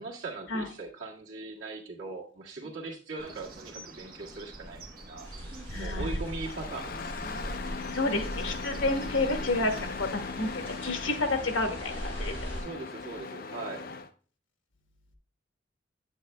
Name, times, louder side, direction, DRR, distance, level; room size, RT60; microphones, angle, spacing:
voice 1, 0.0-4.8 5.1-5.3 5.7-7.0 12.6-13.9, right 3 dB, 85° right, -3 dB, 1.8 m, -40 dB
Bird, 3.2-9.8, right 1 dB, 45° right, 1.1 m, -43 dB
sound 1, 5.2-12.6, equal, 10° left, 3.5 m, -40 dB
voice 2, 5.7-6.1 7.9-12.5, left 2 dB, 85° left, 5 dB, 1.2 m, -30 dB
Engine starting, 6.0-14.1, left 4 dB, 50° left, 0.5 m, -39 dB
9.0 x 8.9 x 2.2 m, 0.41 s
head